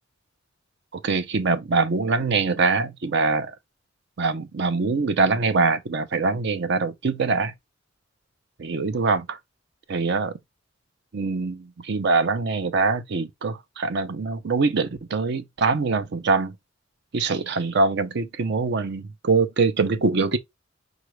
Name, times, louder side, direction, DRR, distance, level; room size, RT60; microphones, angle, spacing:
voice 1, 1.0-3.5 4.2-7.5 8.6-9.4 9.9-10.3 11.1-16.6 17.1-20.4, right 4 dB, 60° right, 0.6 m, -23 dB
4.9 x 2.4 x 3.1 m
head